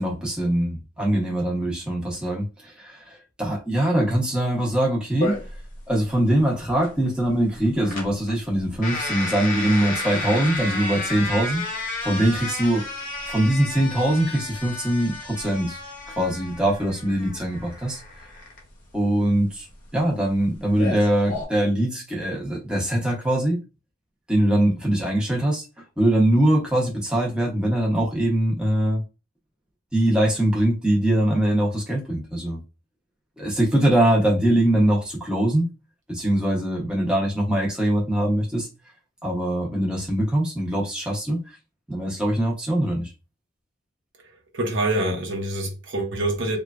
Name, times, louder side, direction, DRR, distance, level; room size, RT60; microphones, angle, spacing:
voice 1, 0.0-5.4 5.9-12.8 13.3-15.8 16.2-18.0 18.9-19.7 19.9-23.6 24.3-25.7 26.0-29.0 29.9-32.6 33.4-35.7 36.1-38.7 39.2-41.6 41.9-43.1, right 1 dB, 5° right, 0.8 m, -22 dB
sound 1, 5.2-21.4, left 2 dB, 40° left, 0.7 m, -32 dB
voice 2, 44.5-46.6, right 1 dB, 70° right, 0.8 m, -25 dB
3.0 x 2.3 x 2.4 m
head